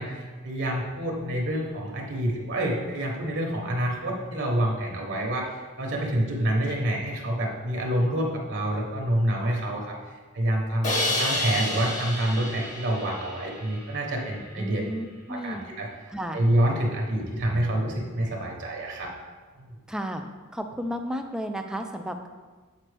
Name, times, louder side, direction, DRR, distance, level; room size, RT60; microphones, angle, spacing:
voice 1, 0.0-14.8 15.3-15.9 16.3-19.1 19.6-19.7, right 1 dB, 55° right, 0 dB, 0.9 m, -27 dB
Crash cymbal, 10.8-13.9, left 1 dB, 35° left, 1.1 m, -29 dB
voice 2, 14.6-15.6 16.1-16.4 19.9-20.2 20.5-22.3, equal, 5° right, 5 dB, 0.4 m, -33 dB
7.4 x 4.3 x 3.3 m, 1.4 s
head